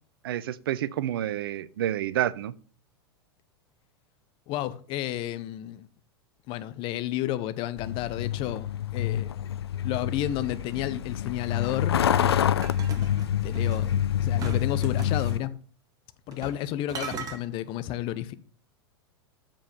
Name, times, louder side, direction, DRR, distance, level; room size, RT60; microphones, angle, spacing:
voice 1, 0.2-2.5, right 12 dB, 60° right, 0.5 m, -29 dB
voice 2, 4.5-5.9 6.5-9.4 9.8-12.5 13.0-13.1 13.4-15.5 16.3-18.3, left 13 dB, 40° left, 0.8 m, -32 dB
Truck, 7.8-15.4, left 10 dB, 75° left, 0.4 m, -27 dB
sound 1, 12.6-13.9 14.4-15.4 16.3-16.6 16.9-17.4, right 5 dB, 25° right, 1.7 m, -38 dB
7.2 x 5.4 x 6.8 m
figure-of-eight pair, 95°, 14 cm